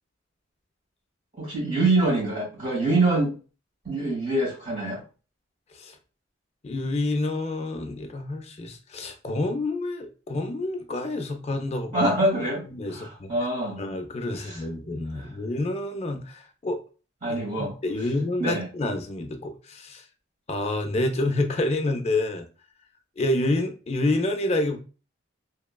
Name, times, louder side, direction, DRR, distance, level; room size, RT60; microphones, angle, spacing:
voice 1, 1.4-3.3 3.8-5.0 11.9-13.8 14.3-14.6 15.1-15.3 17.2-17.7 18.4-18.7, right 2 dB, 40° right, -3 dB, 1.5 m, -25 dB
voice 2, 6.6-12.1 12.7-13.3 13.8-16.8 17.3-20.0 20.5-22.4 23.2-24.8, left 2 dB, 30° left, 5 dB, 0.4 m, -28 dB
2.9 x 2.2 x 2.2 m, 0.35 s
head